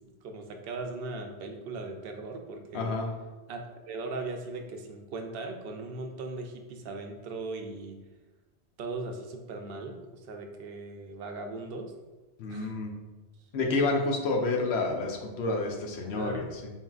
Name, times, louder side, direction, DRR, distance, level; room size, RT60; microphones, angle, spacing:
voice 1, 0.2-2.9 3.5-3.6 3.9-8.0 8.8-11.9 12.5-12.8 13.8-13.9 16.0-16.6, right 3 dB, 60° right, 4 dB, 0.7 m, -38 dB
voice 2, 2.7-3.1 12.4-12.9 13.5-16.7, left 3 dB, 70° left, 2 dB, 0.9 m, -29 dB
4.3 x 3.7 x 2.3 m, 1.2 s
omnidirectional pair, 1.2 m